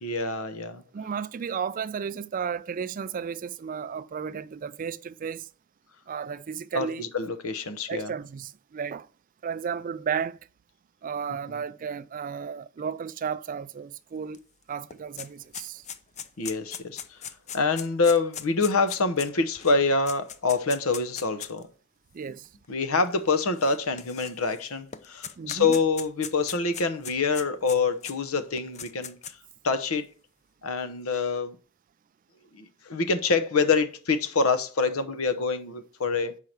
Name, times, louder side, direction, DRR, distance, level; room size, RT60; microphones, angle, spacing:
voice 1, 0.0-0.8 6.7-8.1 11.5-11.6 16.4-17.2 17.5-21.7 22.7-29.4 29.6-30.1 30.6-31.6 32.5-36.4, left 4 dB, 80° left, 0.9 m, -26 dB
voice 2, 0.9-5.5 6.1-7.0 7.9-9.1 9.4-10.5 11.0-14.4 14.7-15.8 22.1-22.5 25.4-25.8, right 7 dB, 40° right, 0.3 m, -33 dB
sound 1, 14.3-14.4 14.7-21.6 22.4-22.5 23.6-24.6 24.9-28.1 28.6-29.5, left 8 dB, 30° left, 0.5 m, -39 dB
5.7 x 4.6 x 6.4 m
head